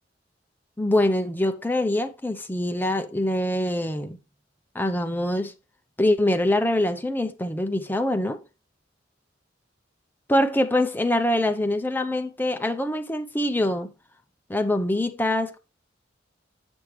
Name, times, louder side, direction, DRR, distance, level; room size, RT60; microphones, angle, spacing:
voice 1, 0.8-4.2 4.7-5.5 6.0-8.4 10.3-13.9 14.5-15.6, left 1 dB, 10° left, 0.6 m, -24 dB
7.1 x 6.2 x 3.2 m
head